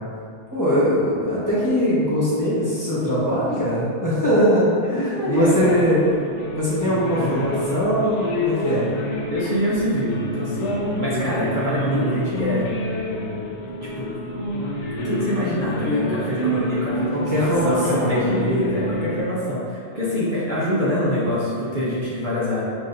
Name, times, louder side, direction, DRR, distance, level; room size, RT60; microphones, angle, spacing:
voice 1, 0.5-6.0 6.5-8.9 11.7-12.1 17.1-18.3, equal, 15° left, -11 dB, 1.2 m, -21 dB
voice 2, 4.8-5.7 9.3-13.0 13.8-14.1 15.0-22.6, equal, 45° right, -8 dB, 0.9 m, -25 dB
sound 1, 5.3-19.2, equal, 85° left, 1.0 m, -28 dB
6.9 x 2.5 x 2.6 m, 2.3 s
omnidirectional pair, 1.2 m